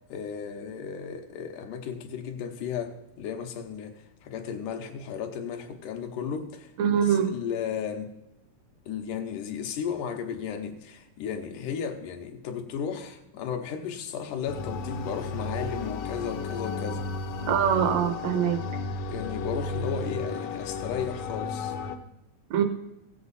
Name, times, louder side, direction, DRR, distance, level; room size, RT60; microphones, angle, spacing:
voice 1, 0.1-8.1 8.9-17.0 19.1-21.7 22.6-22.7, left 7 dB, 90° left, 5 dB, 2.5 m, -34 dB
voice 2, 6.8-7.3 17.4-18.7 22.5-22.6, right 8 dB, 75° right, 8 dB, 1.8 m, -23 dB
sound 1, 14.5-22.0, left 3 dB, 75° left, 1.5 m, -33 dB
16.0 x 7.9 x 4.1 m, 0.88 s
omnidirectional pair, 3.6 m